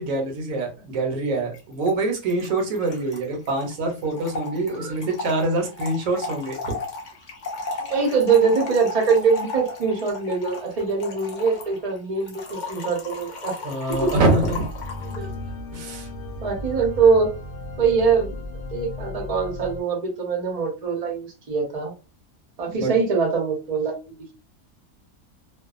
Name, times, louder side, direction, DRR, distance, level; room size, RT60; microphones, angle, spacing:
voice 1, 0.0-6.7 13.6-14.6 15.7-16.1 22.7-22.9, right 2 dB, 70° right, 3 dB, 1.1 m, -25 dB
Trickle dribble / Fill (with liquid), 1.5-1.6 1.9-2.0 2.2-15.3, left 3 dB, 50° left, 0.5 m, -35 dB
voice 2, 7.9-13.5 14.0-14.1 15.0-15.3 16.4-17.3 17.8-18.4 18.7-21.9 22.6-24.3, right 5 dB, 35° right, 1 dB, 0.6 m, -23 dB
sound 1, 13.9-19.8, left 2 dB, 85° left, 1.1 m, -35 dB
2.5 x 2.3 x 2.3 m, 0.32 s
omnidirectional pair, 1.5 m